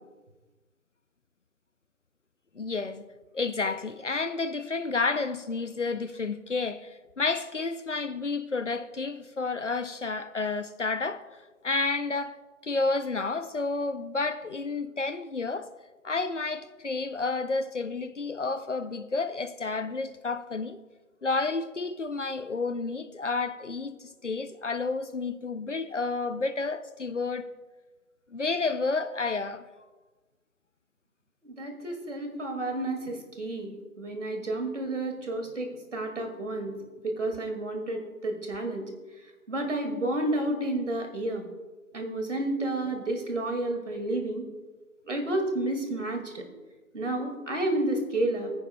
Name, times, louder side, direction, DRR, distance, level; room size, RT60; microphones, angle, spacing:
voice 1, 2.6-3.0 3.3-11.3 11.6-12.4 12.6-15.7 16.0-20.8 21.2-27.5 28.3-29.6, left 3 dB, 55° left, 0.6 m, -30 dB
voice 2, 31.4-36.7 37.0-38.9 39.5-41.5 41.9-44.5 45.1-46.4 46.9-48.5, right 1 dB, 55° right, 2.2 m, -31 dB
21.5 x 9.8 x 2.2 m
figure-of-eight pair, 175°, 44 cm